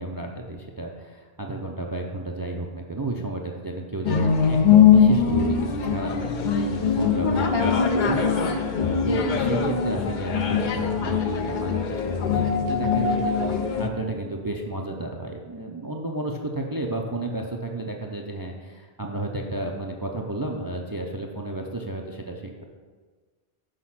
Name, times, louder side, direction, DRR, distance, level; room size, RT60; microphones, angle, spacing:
voice 1, 0.0-6.2 6.7-8.3 9.0-13.4 13.8-22.6, right 2 dB, 30° right, 1 dB, 0.4 m, -32 dB
sound 1, 4.0-13.9, left 6 dB, 55° left, 0.6 m, -22 dB
voice 2, 7.2-9.0, left 4 dB, 70° left, 3 dB, 1.1 m, -30 dB
6.5 x 5.1 x 5.7 m, 1.5 s
omnidirectional pair, 1.1 m